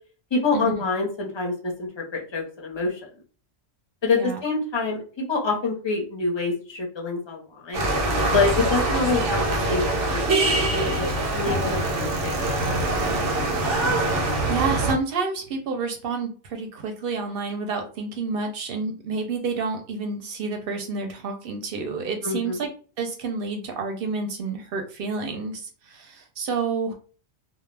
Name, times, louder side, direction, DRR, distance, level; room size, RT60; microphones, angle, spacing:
voice 1, 0.3-1.5 1.8-3.0 4.0-7.9 8.3-9.4 9.7-11.1 11.3-12.7 22.2-22.6, left 4 dB, 30° left, 0 dB, 0.5 m, -26 dB
sound 1, 7.7-14.9, right 2 dB, 90° right, 1.0 m, -24 dB
voice 2, 14.0-22.7 23.0-26.9, right 4 dB, 60° right, 4 dB, 0.7 m, -29 dB
2.3 x 2.0 x 3.2 m, 0.40 s
omnidirectional pair, 1.2 m